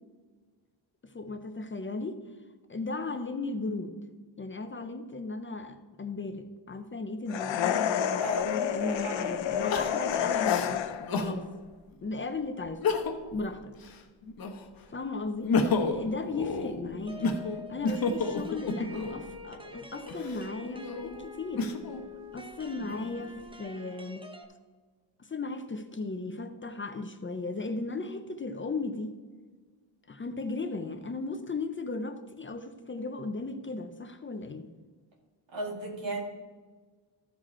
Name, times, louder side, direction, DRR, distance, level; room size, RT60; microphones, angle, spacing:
voice 1, 1.0-2.2 2.7-4.0 4.4-8.3 8.7-11.5 12.0-12.8 13.3-13.7 14.9-17.4 17.7-21.7 22.3-24.3 25.2-29.2 30.1-34.7, left 3 dB, 25° left, 8 dB, 0.5 m, -36 dB
sound 1, 7.3-11.2, left 9 dB, 75° left, 0.7 m, -29 dB
voice 2, 8.2-9.2 35.5-36.2, right 1 dB, 80° right, -1 dB, 2.6 m, -35 dB
Crying sobbing, 8.3-8.4 9.7-11.4 11.9-12.0 12.7-13.4 13.7-14.8 15.2-19.2 19.9-22.0 22.6-23.4, left 4 dB, 50° left, 1.0 m, -31 dB
sound 2, 17.1-24.4, left 1 dB, 10° right, 0.7 m, -46 dB
14.0 x 4.9 x 4.2 m, 1.4 s
wide cardioid pair, 165°, 45 cm